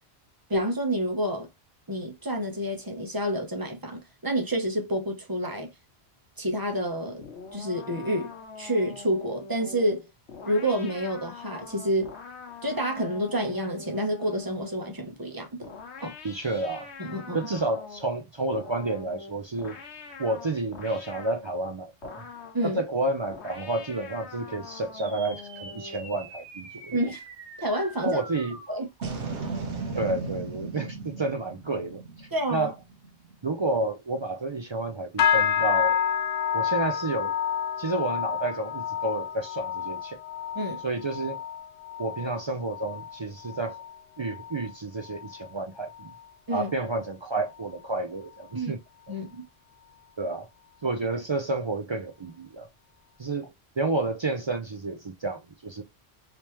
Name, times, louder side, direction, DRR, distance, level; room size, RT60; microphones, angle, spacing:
voice 1, 0.5-1.5 1.9-5.7 6.4-7.2 7.5-8.3 8.6-10.1 10.4-12.1 12.6-15.7 16.0-16.1 17.0-17.5 22.5-22.8 26.9-27.2 27.6-28.2 28.7-28.9 32.3-32.7 40.5-40.8 46.5-46.7 48.5-48.7 49.1-49.5, equal, 20° right, 0.8 m, -28 dB
sound 1, 7.2-15.0 15.6-18.1 18.5-21.5 22.0-22.7 23.3-26.1, left 5 dB, 85° left, 1.1 m, -44 dB
voice 2, 16.2-16.9 17.3-19.8 20.2-22.2 22.6-27.0 28.0-28.6 29.9-32.7 33.4-36.0 36.5-37.3 37.8-40.2 40.8-41.4 42.0-43.8 44.2-46.1 46.5-48.8 50.2-50.5 50.8-52.7 53.2-55.8, right 2 dB, 45° right, 0.3 m, -30 dB
sound 2, 25.0-33.6, right 4 dB, 90° right, 1.2 m, -38 dB
sound 3, 35.2-44.7 45.0-45.5 45.9-46.2 46.8-46.9, left 9 dB, 55° left, 0.6 m, -29 dB
3.4 x 2.9 x 3.0 m
omnidirectional pair, 1.1 m